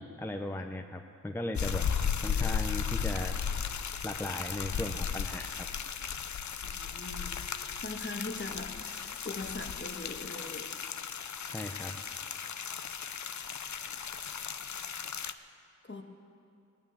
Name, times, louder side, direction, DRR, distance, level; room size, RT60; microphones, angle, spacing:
voice 1, 0.0-1.9 2.2-3.4 4.0-5.7 11.5-12.0, left 1 dB, 10° left, 4 dB, 0.8 m, -37 dB
sound 1, 1.6-15.3, left 7 dB, 65° left, 0.6 m, -35 dB
voice 2, 6.8-7.3 7.8-10.7 15.9-16.0, left 2 dB, 35° left, 4 dB, 1.4 m, -41 dB
18.0 x 9.6 x 7.2 m, 2.5 s
wide cardioid pair, 55°, 31 cm